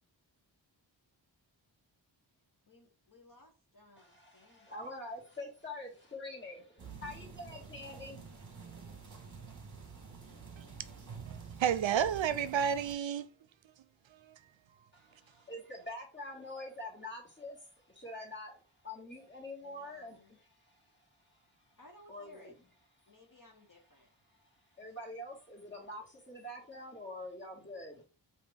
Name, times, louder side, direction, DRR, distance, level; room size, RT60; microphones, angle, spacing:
voice 1, 2.7-5.0 10.2-11.3 19.6-20.3 21.8-22.5 23.1-24.1 24.8-24.9, left 1 dB, 45° left, 1.0 m, -60 dB
voice 2, 4.0-8.3 9.2-9.4 14.9-20.8 21.3-21.4 22.1-22.5 24.8-28.0, left 1 dB, 25° left, 1.9 m, -46 dB
sound 1, 6.8-13.0, right 6 dB, 40° right, 1.2 m, -48 dB
voice 3, 11.3-13.3, right 8 dB, 80° right, 0.6 m, -31 dB
5.0 x 2.8 x 3.4 m
wide cardioid pair, 105°, 45 cm